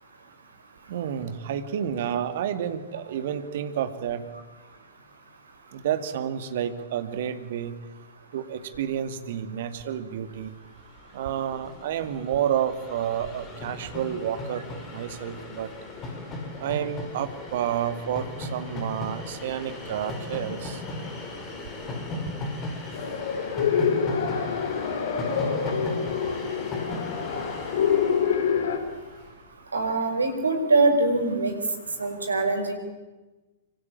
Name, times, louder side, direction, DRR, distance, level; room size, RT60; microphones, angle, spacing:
voice 1, 0.9-4.2 5.7-7.7 8.3-10.5 11.1-14.6 14.9-15.7 16.6-20.8, right 9 dB, 50° right, 10 dB, 2.3 m, -30 dB
Train, 10.6-10.7 10.9-29.3, left 2 dB, 25° left, 5.7 m, -37 dB
sound 1, 22.9-28.8, left 7 dB, 55° left, 3.9 m, -26 dB
voice 2, 29.7-31.5 32.0-32.7, right 3 dB, 75° right, 7 dB, 5.2 m, -23 dB
26.0 x 25.0 x 8.9 m, 1.2 s
figure-of-eight pair, 105°, 0 cm